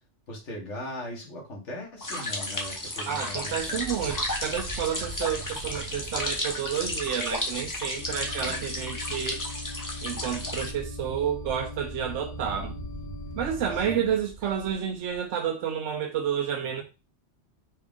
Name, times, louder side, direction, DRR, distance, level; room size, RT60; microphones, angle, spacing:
voice 1, 0.3-3.8 8.4-8.6 13.7-14.1, left 1 dB, 85° left, 1.6 m, -39 dB
sound 1, 2.0-10.7, left 1 dB, 20° left, 0.7 m, -33 dB
voice 2, 3.1-9.4 10.0-12.7 13.3-16.8, right 8 dB, 85° right, 0.9 m, -30 dB
sound 2, 3.3-8.9 9.4-9.5 9.7-15.3, right 3 dB, 60° right, 0.8 m, -43 dB
sound 3, 8.0-13.9, left 2 dB, 45° left, 1.0 m, -40 dB
4.4 x 2.4 x 3.5 m
omnidirectional pair, 1.2 m